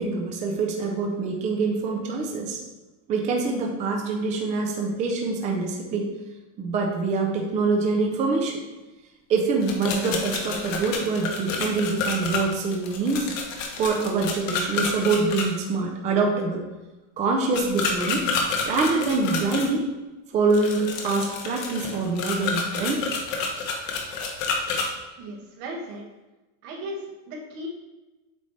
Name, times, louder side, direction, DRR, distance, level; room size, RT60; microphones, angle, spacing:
voice 1, 0.0-2.6 3.1-6.1 6.6-8.6 9.3-13.3 13.8-16.6 17.2-18.3 18.6-19.9 20.3-23.0, right 3 dB, 20° right, 1 dB, 0.5 m, -25 dB
sound 1, 9.6-15.4 17.5-19.7 20.5-24.9, left 4 dB, 70° left, 1.3 m, -29 dB
voice 2, 25.2-26.0 26.6-27.7, right 1 dB, 55° right, -1 dB, 1.5 m, -36 dB
8.4 x 3.3 x 4.1 m, 1.1 s
supercardioid pair, 165°, 40 cm